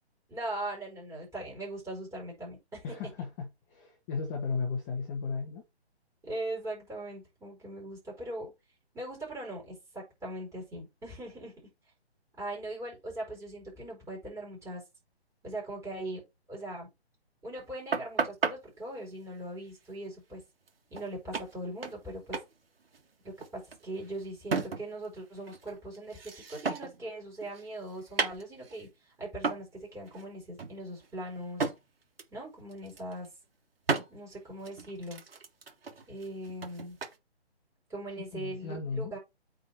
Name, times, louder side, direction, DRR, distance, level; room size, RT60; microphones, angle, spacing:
voice 1, 0.3-3.0 6.2-8.5 8.9-11.7 12.4-14.8 15.4-16.2 16.5-16.9 17.4-20.4 20.9-22.4 23.2-28.9 29.2-31.7 32.3-33.3 34.1-35.2 36.1-37.0 37.9-39.2, right 1 dB, 10° right, 4.8 m, -40 dB
voice 2, 2.8-5.6 38.3-39.1, left 4 dB, 15° left, 1.3 m, -35 dB
sound 1, 17.9-18.6 20.7-20.8 20.9-21.1 21.3-22.1 22.3-22.5 22.8-25.1 25.4-27.0 27.4-28.9 29.4-29.7 30.1-30.2 30.6-31.8 32.2-32.4 32.7-33.3 33.9-34.1 34.6-37.2, right 4 dB, 60° right, 1.9 m, -34 dB
8.7 x 4.0 x 4.3 m
figure-of-eight pair, 145°, 33 cm